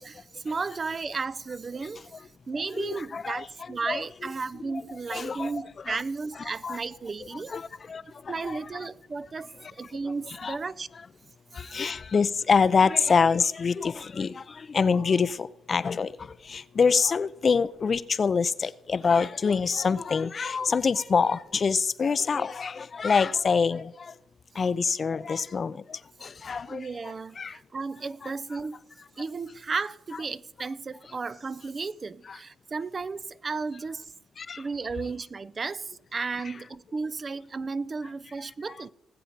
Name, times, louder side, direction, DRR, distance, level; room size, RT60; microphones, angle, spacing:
voice 1, 0.0-2.0 2.5-7.6 8.3-10.9 11.7-11.9 26.7-28.8 29.2-34.1 34.6-38.9, right 4 dB, 40° right, 0.4 m, -34 dB
voice 2, 2.8-3.5 3.9-4.0 5.1-6.0 6.6-6.8 7.5-8.6 10.3-10.6 11.5-24.1 24.5-27.6 28.2-28.3 32.3-32.4 34.4-34.6, left 5 dB, 45° left, 0.4 m, -26 dB
19.5 x 7.7 x 4.0 m
supercardioid pair, 65°, 0 cm